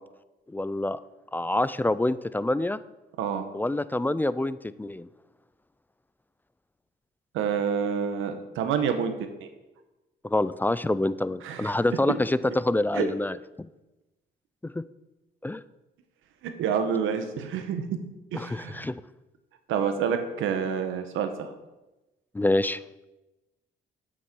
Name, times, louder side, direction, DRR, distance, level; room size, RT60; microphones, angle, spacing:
voice 1, 0.5-1.0 1.3-2.8 3.5-5.1 10.2-13.7 14.6-14.8 15.4-15.6 18.3-19.0 22.3-22.8, left 1 dB, 10° left, 16 dB, 0.3 m, -26 dB
voice 2, 7.3-9.1 9.4-9.5 11.4-11.7 12.9-13.1 16.4-17.8 18.3-18.9 19.7-21.5, right 7 dB, 90° right, 7 dB, 1.1 m, -28 dB
7.9 x 6.2 x 6.0 m, 1.0 s
cardioid pair, 90°, 20 cm